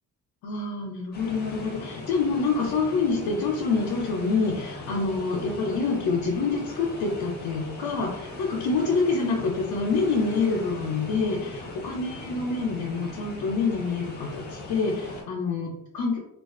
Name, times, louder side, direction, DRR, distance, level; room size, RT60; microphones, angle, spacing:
voice 1, 0.4-16.2, left 4 dB, 85° left, -2 dB, 0.5 m, -27 dB
sound 1, 1.1-15.2, left 2 dB, 25° left, 0.5 m, -39 dB
2.3 x 2.3 x 2.4 m, 0.83 s
wide cardioid pair, 175°, 37 cm